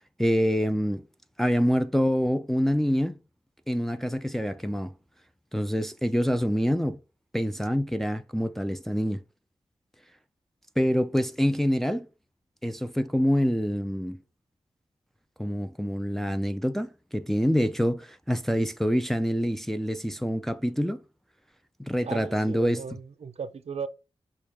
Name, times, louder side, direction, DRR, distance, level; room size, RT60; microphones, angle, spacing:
voice 1, 0.2-1.0 1.4-3.2 3.7-4.9 5.5-7.0 7.3-9.2 10.8-12.1 12.6-14.2 15.4-21.0 21.8-22.8, equal, 5° left, 0.4 m, -26 dB
voice 2, 22.0-23.9, right 5 dB, 70° right, 0.6 m, -36 dB
6.4 x 2.4 x 3.5 m
wide cardioid pair, 75°, 11 cm